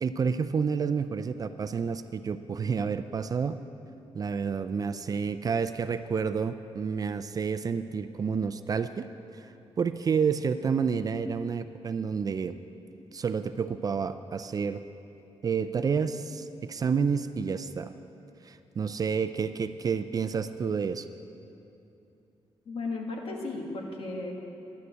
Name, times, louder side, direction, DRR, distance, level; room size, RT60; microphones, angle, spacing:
voice 1, 0.0-3.6 4.1-9.1 9.3-12.6 13.1-14.8 15.4-17.9 18.4-21.1, right 6 dB, 35° right, 11 dB, 0.4 m, -29 dB
voice 2, 22.7-24.3, left 3 dB, 60° left, 0 dB, 1.9 m, -35 dB
11.0 x 9.5 x 8.0 m, 2.8 s
wide cardioid pair, 175°, 11 cm